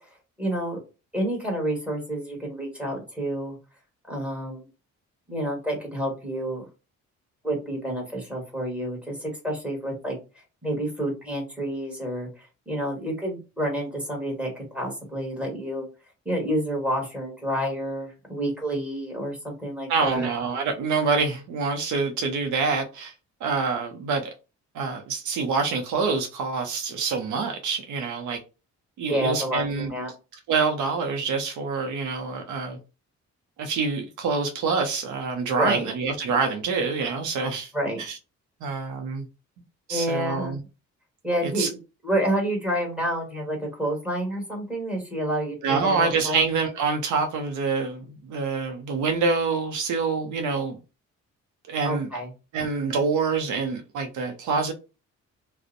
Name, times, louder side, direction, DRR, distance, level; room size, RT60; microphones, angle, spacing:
voice 1, 0.4-0.8 1.1-3.6 4.1-4.7 5.3-6.7 7.4-10.2 10.6-15.9 16.2-20.3 29.1-30.1 35.6-35.9 37.7-38.0 39.9-40.6 41.2-41.8 42.0-46.4 51.8-52.3, right 1 dB, 5° right, 1.4 m, -29 dB
voice 2, 19.9-23.1 23.4-24.3 24.7-28.4 29.0-29.9 30.5-32.8 33.6-37.7 38.0-38.2 38.6-39.3 39.9-40.6 41.4-41.7 45.6-50.8 51.7-52.1 52.5-54.7, right 4 dB, 80° right, 0.6 m, -26 dB
2.5 x 2.1 x 2.5 m
cardioid pair, 90°, 30 cm